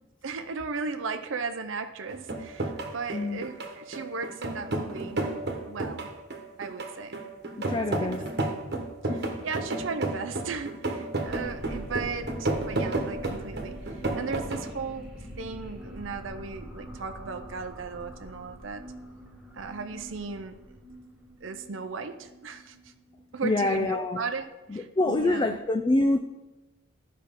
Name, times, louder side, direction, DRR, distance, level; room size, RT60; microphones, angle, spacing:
voice 1, 0.2-5.2 5.6-6.1 6.6-7.2 7.8-8.4 9.0-18.9 19.5-20.6 21.4-22.9 23.3-25.6, right 4 dB, 70° right, 8 dB, 0.6 m, -36 dB
sound 1, 2.1-14.7, right 2 dB, 55° right, 1.2 m, -32 dB
voice 2, 7.6-8.2 9.1-9.2 23.4-24.2 24.7-26.2, left 2 dB, 25° left, 7 dB, 0.3 m, -26 dB
sound 2, 11.2-24.1, equal, 5° right, 1.7 m, -44 dB
13.0 x 5.6 x 3.7 m, 1.1 s
head